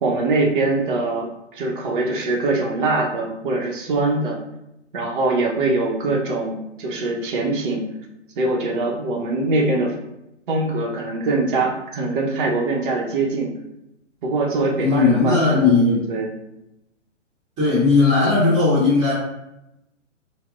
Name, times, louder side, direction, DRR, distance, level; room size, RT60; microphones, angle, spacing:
voice 1, 0.0-4.4 4.9-7.9 8.4-9.9 10.5-13.5 14.2-16.3, right 2 dB, 45° right, -1 dB, 0.8 m, -23 dB
voice 2, 14.8-16.0 17.6-19.1, left 4 dB, 20° right, -12 dB, 1.3 m, -17 dB
4.2 x 2.0 x 2.4 m, 0.89 s
hypercardioid pair, 135°, 37 cm